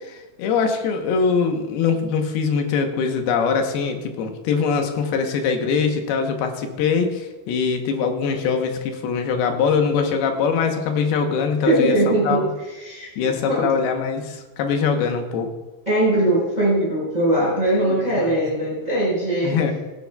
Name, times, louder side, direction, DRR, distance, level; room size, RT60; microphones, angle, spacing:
voice 1, 0.0-12.5 13.2-15.5 17.9-18.4 19.4-19.8, left 5 dB, 90° left, 4 dB, 3.0 m, -22 dB
voice 2, 11.6-13.7 15.8-19.6, right 1 dB, 10° right, -6 dB, 4.6 m, -21 dB
22.5 x 9.9 x 2.3 m, 1.1 s
omnidirectional pair, 4.3 m